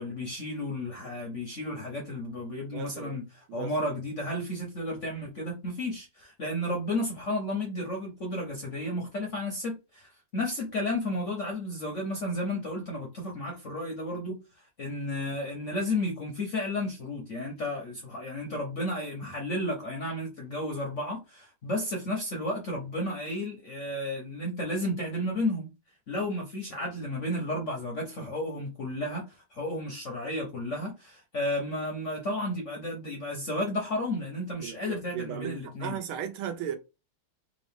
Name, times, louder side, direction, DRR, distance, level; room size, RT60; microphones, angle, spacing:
voice 1, 0.0-25.7 26.1-36.0, left 1 dB, 55° left, 0.8 m, -33 dB
voice 2, 2.7-3.2 3.5-3.7 34.6-36.8, right 8 dB, 80° right, 1.6 m, -36 dB
3.7 x 2.6 x 3.5 m
omnidirectional pair, 2.3 m